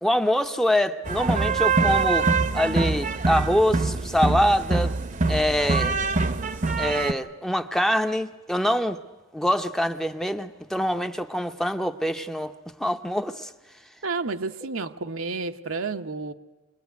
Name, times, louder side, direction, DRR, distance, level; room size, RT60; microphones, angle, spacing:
voice 1, 0.0-2.3 2.5-4.9 5.3-6.0 6.8-9.0 9.3-12.5 12.8-13.5, equal, ahead, 0.8 m, -24 dB
sound 1, 1.0-7.1, right 4 dB, 40° right, 0.9 m, -24 dB
voice 2, 14.0-16.3, right 4 dB, 75° right, 1.1 m, -30 dB
25.5 x 20.0 x 9.4 m
head